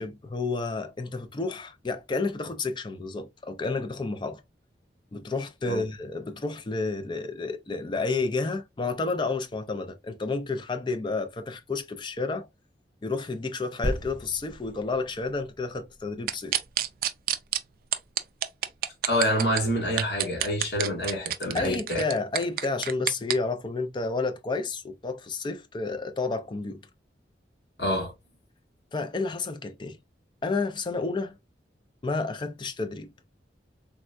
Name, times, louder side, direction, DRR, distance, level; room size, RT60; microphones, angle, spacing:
voice 1, 0.0-4.4 5.1-12.5 13.0-16.6 21.5-26.8 28.9-30.0 30.4-31.3 32.0-33.1, left 3 dB, 25° left, 0.4 m, -30 dB
sound 1, 13.8-17.4 18.0-18.1, equal, 10° right, 0.7 m, -37 dB
sound 2, 16.3-17.6 17.9-19.6 20.0-23.3, right 11 dB, 55° right, 0.3 m, -27 dB
voice 2, 19.1-22.0 27.8-28.1, equal, 65° left, 1.3 m, -27 dB
3.5 x 2.2 x 2.5 m
head